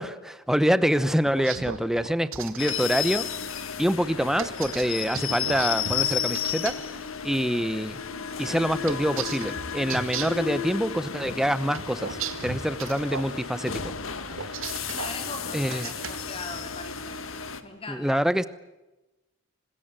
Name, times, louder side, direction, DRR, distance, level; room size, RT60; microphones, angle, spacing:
voice 1, 0.0-3.3 3.8-6.8 7.2-8.0 8.4-13.9 15.5-15.9 17.9-18.5, equal, ahead, 14 dB, 0.8 m, -26 dB
sound 1, 1.2-2.7 4.4-6.7 8.9-10.5 11.7-13.3 14.3-15.2 15.6-16.2, right 6 dB, 75° right, 2.1 m, -35 dB
sound 2, 2.6-17.6, left 7 dB, 75° left, 1.9 m, -33 dB
voice 2, 14.9-17.2 17.6-18.2, left 3 dB, 25° left, 4 dB, 4.3 m, -39 dB
26.0 x 20.5 x 9.0 m, 1.0 s
head